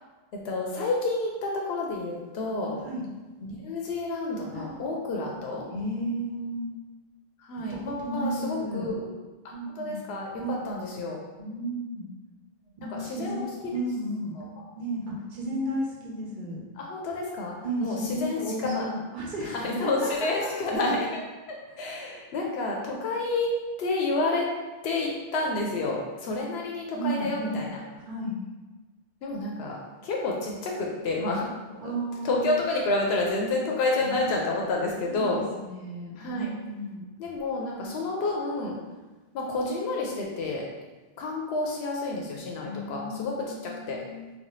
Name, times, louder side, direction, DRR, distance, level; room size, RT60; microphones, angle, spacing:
voice 1, 0.4-2.8 3.4-5.7 7.4-9.1 9.7-10.3 10.6-11.2 12.9-13.5 14.4-14.5 16.8-17.5 17.8-18.9 19.4-21.2 21.5-24.5 24.8-27.8 29.2-29.8 30.0-31.5 31.8-31.9 32.2-35.4 36.2-36.5 37.2-38.8 39.3-40.6 41.2-44.0, left 2 dB, 90° left, -1 dB, 0.8 m, -29 dB
voice 2, 5.7-6.7 7.7-8.9 9.5-10.0 10.4-10.6 11.4-12.1 12.8-14.3 14.8-16.6 17.6-20.5 26.9-27.7 27.9-28.4 31.8-32.5 34.0-34.3 35.0-37.0 42.6-44.3, right 1 dB, 55° right, -2 dB, 0.9 m, -33 dB
4.1 x 2.3 x 3.0 m, 1.2 s
omnidirectional pair, 1.0 m